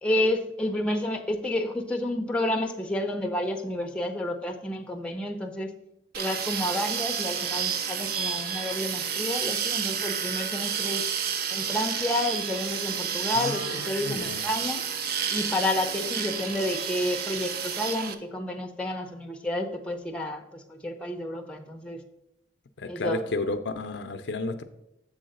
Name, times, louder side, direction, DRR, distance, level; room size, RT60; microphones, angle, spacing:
voice 1, 0.0-5.7 6.2-11.0 11.5-14.8 15.3-22.0 22.9-23.2, left 1 dB, 5° left, 3 dB, 0.6 m, -30 dB
sound 1, 6.1-18.1, right 7 dB, 55° right, 0.5 m, -30 dB
voice 2, 13.3-14.5 22.8-24.6, left 2 dB, 70° left, 9 dB, 0.5 m, -32 dB
7.2 x 3.8 x 6.5 m, 0.85 s
head